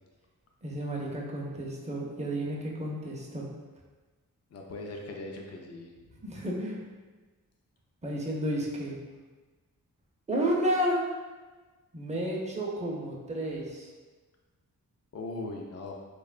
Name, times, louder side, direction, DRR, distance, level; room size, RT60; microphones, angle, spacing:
voice 1, 0.6-3.5 6.2-6.8 8.0-9.0 10.3-11.0 11.9-13.9, right 1 dB, 20° right, -3 dB, 0.5 m, -31 dB
voice 2, 4.5-5.9 15.1-15.9, left 2 dB, 45° left, 1 dB, 0.4 m, -39 dB
2.8 x 2.2 x 2.4 m, 1.3 s
cardioid pair, 65°, 35 cm